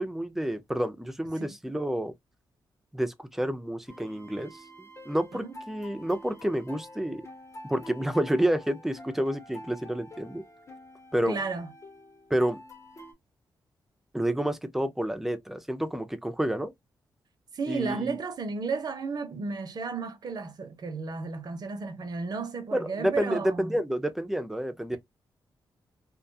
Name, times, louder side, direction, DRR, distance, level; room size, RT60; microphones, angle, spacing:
voice 1, 0.0-2.1 2.9-4.6 5.1-7.2 7.6-10.4 11.1-11.4 12.3-12.6 14.1-16.7 17.7-18.2 22.7-25.0, right 1 dB, 5° right, 0.5 m, -29 dB
sound 1, 3.9-13.1, left 1 dB, 35° left, 0.9 m, -47 dB
voice 2, 11.2-11.7 17.5-23.8, right 4 dB, 55° right, 0.7 m, -33 dB
2.4 x 2.3 x 2.7 m
cardioid pair, 100°, 8 cm